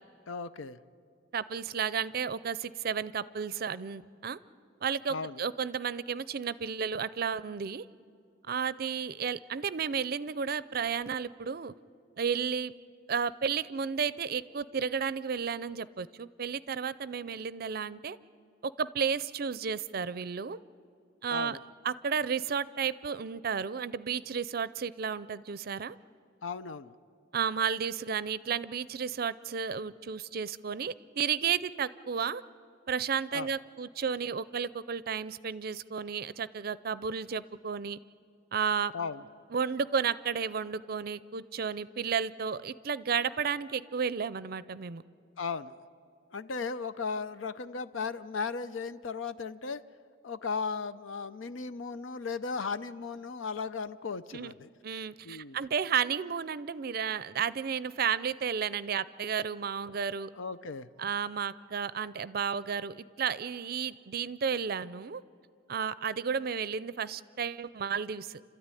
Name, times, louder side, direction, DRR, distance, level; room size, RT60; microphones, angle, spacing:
voice 1, 0.3-0.8 5.1-5.4 21.3-21.6 26.4-26.9 33.3-33.5 38.9-39.2 45.4-45.7 46.3-49.8 50.2-54.7 55.2-55.6 60.3-60.9, left 5 dB, 85° left, 13 dB, 0.6 m, -36 dB
voice 2, 1.3-4.4 4.8-7.8 8.5-11.7 12.2-12.7 13.1-18.2 18.6-20.6 21.2-21.6 21.8-26.0 27.3-32.4 32.9-38.0 38.5-38.9 39.5-45.0 54.3-54.5 54.8-60.3 61.0-65.2 65.7-68.4, right 6 dB, 50° right, 17 dB, 0.5 m, -32 dB
29.0 x 13.5 x 9.8 m, 2.3 s
head